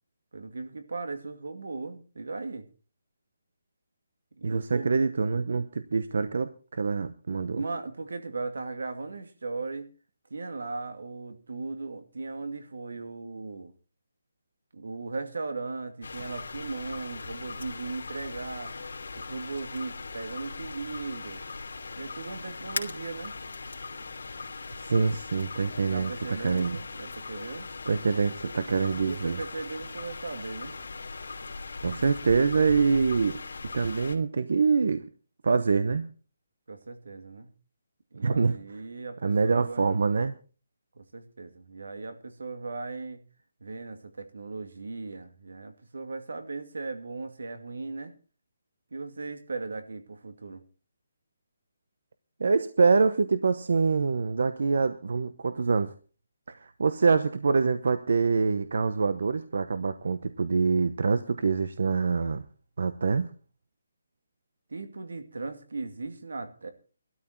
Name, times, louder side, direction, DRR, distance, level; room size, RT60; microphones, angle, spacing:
voice 1, 0.3-2.7 4.4-4.9 7.5-9.9 10.3-13.7 14.7-18.7 19.1-21.4 22.0-23.3 25.9-27.7 29.0-30.8 36.7-37.5 38.1-39.9 41.0-43.2 43.6-48.1 48.9-50.6 64.7-66.7, right 3 dB, 85° right, 2.5 m, -37 dB
voice 2, 4.4-7.6 24.8-26.8 27.9-29.4 31.8-33.4 33.7-35.0 35.4-36.1 38.2-38.8 39.2-40.3 52.4-55.9 56.5-62.4 62.8-63.3, right 4 dB, 60° right, 0.9 m, -25 dB
sound 1, 16.0-34.2, left 4 dB, 75° left, 2.7 m, -40 dB
16.0 x 12.5 x 4.4 m
hypercardioid pair, 175°, 0 cm